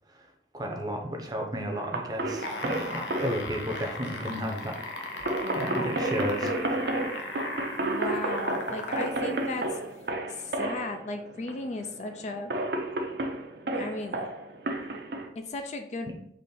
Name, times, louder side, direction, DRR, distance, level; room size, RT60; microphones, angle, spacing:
voice 1, 0.5-4.8 5.0-5.3 5.5-6.5, equal, 20° right, 2 dB, 0.6 m, -33 dB
sound 1, 1.7-15.3, right 2 dB, 60° right, 0.6 m, -32 dB
sound 2, 2.3-9.2 10.0-10.1, left 2 dB, 80° left, 0.7 m, -37 dB
voice 2, 5.4-6.0 7.8-9.7 10.3-12.5 13.7-14.3 15.5-16.2, left 2 dB, 40° left, 6 dB, 0.3 m, -36 dB
4.2 x 3.1 x 3.7 m, 0.70 s
head